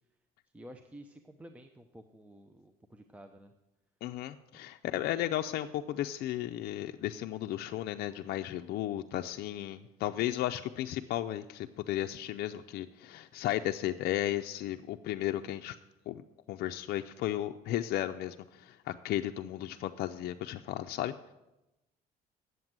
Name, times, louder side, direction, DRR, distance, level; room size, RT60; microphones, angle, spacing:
voice 1, 0.5-3.5 10.1-10.5, equal, 10° right, 6 dB, 0.6 m, -52 dB
voice 2, 4.0-15.8 16.1-21.1, left 13 dB, 70° left, 6 dB, 0.5 m, -34 dB
9.4 x 8.0 x 7.4 m, 0.97 s
cardioid pair, 110°, 17 cm